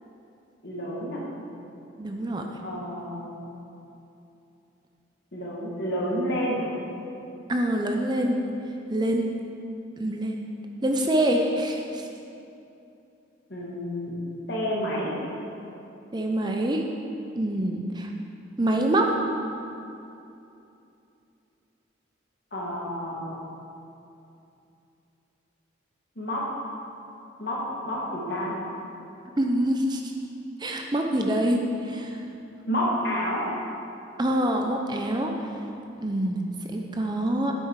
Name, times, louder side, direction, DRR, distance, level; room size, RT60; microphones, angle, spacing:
voice 1, 0.6-1.2 2.6-3.3 5.3-6.7 13.5-14.1 14.5-15.1 22.5-23.4 26.2-26.5 27.4-28.5 32.7-33.5, equal, 55° left, -4 dB, 2.1 m, -29 dB
voice 2, 2.0-2.5 7.5-8.4 8.9-9.3 10.0-10.4 10.8-12.1 16.1-16.8 17.4-18.1 18.6-19.1 29.4-30.1 30.6-32.1 34.2-35.3 36.0-37.5, right 1 dB, 20° right, 2 dB, 0.6 m, -25 dB
9.8 x 8.4 x 4.8 m, 2.8 s
head